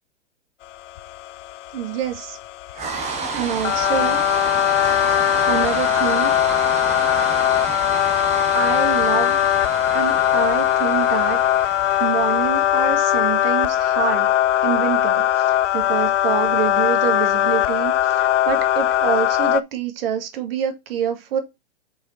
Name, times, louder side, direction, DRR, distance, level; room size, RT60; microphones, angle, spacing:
sound 1, 0.7-19.6, left 12 dB, 70° left, 0.5 m, -20 dB
voice 1, 1.7-2.4 3.3-4.2 5.5-6.3 8.5-9.4 9.9-14.3 14.6-21.4, right 8 dB, 50° right, 1.9 m, -26 dB
sound 2, 2.7-16.9, right 4 dB, 20° right, 1.6 m, -31 dB
5.7 x 4.6 x 4.4 m
hypercardioid pair, 130°, 37 cm